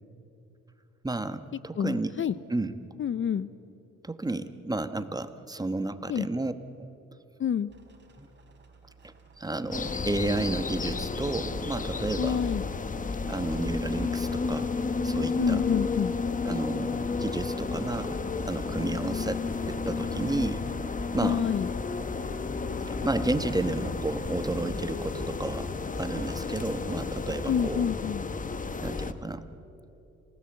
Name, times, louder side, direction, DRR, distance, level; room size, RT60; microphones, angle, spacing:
voice 1, 1.0-2.7 4.0-6.5 6.8-6.9 8.2-8.3 9.4-12.4 13.3-14.7 15.0-15.6 16.4-18.2 18.5-20.6 21.1-21.5 23.0-25.7 26.0-27.9 28.8-29.4, right 2 dB, 15° right, 11 dB, 1.1 m, -32 dB
voice 2, 1.8-2.3 3.0-3.5 6.1-6.3 7.4-7.7 12.2-12.6 15.4-16.1 21.2-21.7 27.5-28.3, left 8 dB, 40° left, 16 dB, 0.6 m, -27 dB
sound 1, 7.7-27.5, right 4 dB, 35° right, 4.0 m, -55 dB
sound 2, 9.7-29.1, left 4 dB, 25° left, 1.1 m, -32 dB
sound 3, 23.5-28.9, left 5 dB, 60° left, 4.4 m, -51 dB
27.5 x 17.5 x 7.8 m, 2.9 s
cardioid pair, 90°, 30 cm